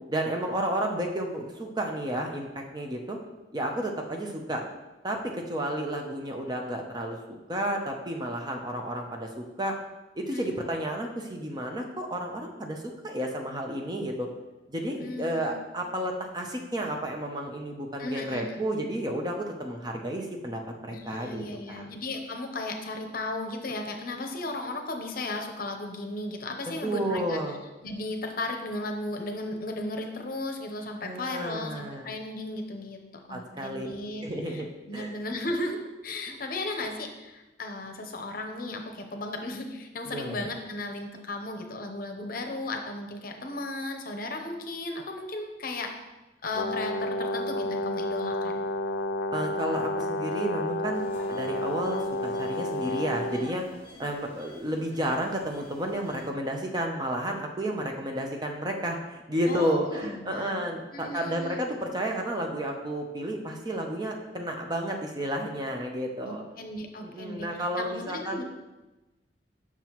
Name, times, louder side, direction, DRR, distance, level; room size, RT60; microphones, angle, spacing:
voice 1, 0.1-3.2 3.5-4.6 5.0-9.8 10.1-14.3 14.7-21.9 26.8-27.6 31.0-32.1 33.3-33.9 34.2-35.2 36.3-36.4 40.0-40.5 49.3-53.6 54.0-66.4 67.0-68.4, right 1 dB, 25° right, 2 dB, 0.6 m, -32 dB
voice 2, 15.0-15.6 18.0-18.5 20.9-27.4 27.8-33.0 33.3-45.9 46.4-48.6 59.5-60.6 60.9-61.6 66.2-67.5 67.8-68.4, left 2 dB, 50° left, 4 dB, 0.7 m, -35 dB
Brass instrument, 46.5-53.5, left 1 dB, 85° left, 0.4 m, -30 dB
sound 1, 50.9-56.3, left 1 dB, 15° left, 1.4 m, -50 dB
7.5 x 6.0 x 3.0 m, 1.1 s
head